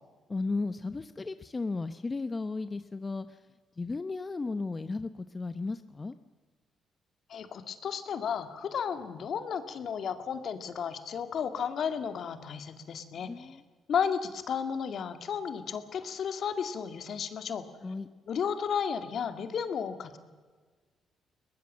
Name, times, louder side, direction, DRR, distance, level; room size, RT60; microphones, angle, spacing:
voice 1, 0.3-3.4 3.8-6.2 13.2-13.6 17.8-18.1, left 3 dB, 25° left, 11 dB, 0.8 m, -35 dB
voice 2, 7.3-13.6 13.9-17.6 18.3-20.2, left 7 dB, 60° left, 9 dB, 2.1 m, -33 dB
22.5 x 20.0 x 7.5 m, 1.5 s
cardioid pair, 90°, 0 cm